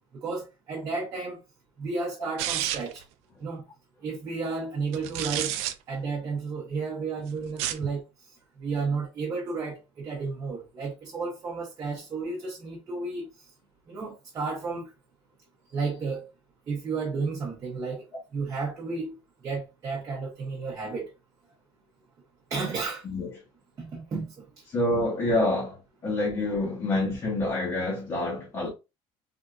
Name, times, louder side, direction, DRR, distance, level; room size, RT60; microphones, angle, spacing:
voice 1, 0.1-1.4 1.8-3.0 3.4-3.6 4.0-5.6 5.9-8.0 8.6-13.3 13.9-14.9 15.7-16.3 16.7-18.1 18.3-19.2 19.4-21.1 22.5-23.0 23.8-24.4, right 4 dB, 30° right, 0.8 m, -32 dB
sound 1, 2.4-3.0 4.9-5.7 7.5-7.9, right 12 dB, 80° right, 0.4 m, -30 dB
voice 2, 24.7-25.8 26.0-28.7, left 2 dB, 30° left, 0.9 m, -27 dB
3.5 x 2.5 x 2.3 m
cardioid pair, 155°, 11 cm